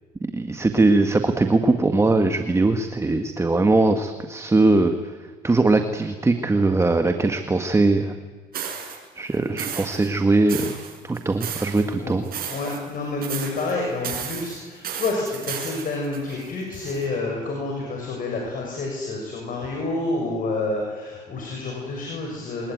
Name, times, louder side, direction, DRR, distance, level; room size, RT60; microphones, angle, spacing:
voice 1, 0.3-4.9 5.4-8.2 9.1-10.7 11.0-12.2, right 2 dB, 15° right, 7 dB, 1.6 m, -20 dB
sound 1, 8.5-9.0 9.6-10.1 10.5-11.8 12.2-12.9 13.2-13.7 14.0-17.0, right 8 dB, 60° right, 6.9 m, -33 dB
voice 2, 12.0-22.7, left 2 dB, 55° left, 0 dB, 7.0 m, -29 dB
24.5 x 20.5 x 9.5 m, 1.5 s
cardioid pair, 110°, 17 cm